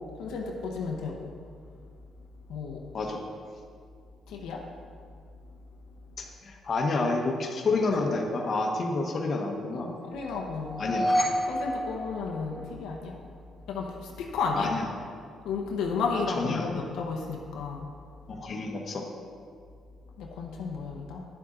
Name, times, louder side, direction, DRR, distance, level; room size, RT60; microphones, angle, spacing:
voice 1, 0.1-1.3 2.5-2.8 4.3-4.7 9.7-10.8 11.4-13.2 13.7-14.8 15.4-17.9 20.2-21.2, left 4 dB, 90° left, 0 dB, 1.0 m, -33 dB
voice 2, 6.2-9.9 10.8-11.2 14.6-14.9 16.3-16.8 18.3-19.1, left 3 dB, 50° left, 2 dB, 1.1 m, -29 dB
sound 1, 10.6-12.9, equal, 15° left, 1.5 m, -29 dB
10.0 x 7.1 x 3.8 m, 2.2 s
cardioid pair, 90°, 0 cm